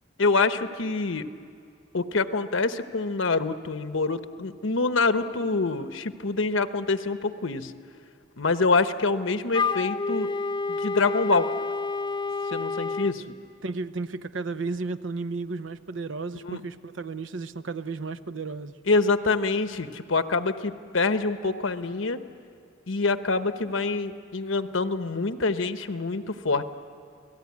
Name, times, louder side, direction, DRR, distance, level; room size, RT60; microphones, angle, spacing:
voice 1, 0.2-1.2 1.9-7.7 8.4-10.3 10.7-11.5 12.5-13.2 16.4-16.6 18.9-22.2 22.9-26.6, left 3 dB, 90° left, 10 dB, 1.0 m, -26 dB
Wind instrument woodwind instrument, 9.5-13.2, left 4 dB, 25° left, 0.8 m, -29 dB
voice 2, 13.6-18.8, right 3 dB, 75° right, 12 dB, 0.8 m, -33 dB
29.0 x 18.0 x 9.6 m, 2.3 s
head